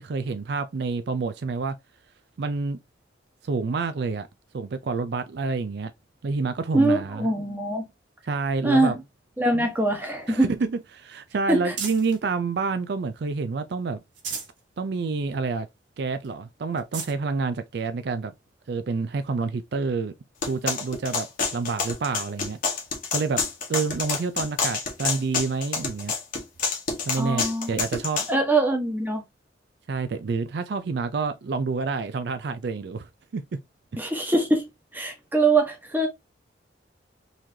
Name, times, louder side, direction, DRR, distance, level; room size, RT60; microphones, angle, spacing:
voice 1, 0.0-1.7 2.4-2.8 3.4-4.3 4.5-5.9 6.2-7.3 8.3-9.0 9.5-9.7 10.3-14.0 14.8-15.7 16.0-18.3 18.7-20.1 20.5-21.3 21.5-22.6 23.1-23.4 23.7-26.1 27.1-28.3 29.9-33.6, right 4 dB, 60° right, 0.4 m, -28 dB
voice 2, 6.7-7.9 8.6-8.9 9.4-10.5 11.5-11.7 27.2-27.7 28.3-29.2 34.0-36.1, right 2 dB, 10° right, 1.1 m, -23 dB
sound 1, 9.6-12.2 12.8-13.5 13.9-14.6 15.1-15.2 15.5-15.6 16.2-16.3 16.7-17.2 18.0-18.1 19.9-20.0, right 5 dB, 90° right, 1.5 m, -39 dB
sound 2, 20.4-28.3, left 5 dB, 45° left, 1.2 m, -28 dB
3.9 x 3.1 x 2.7 m
head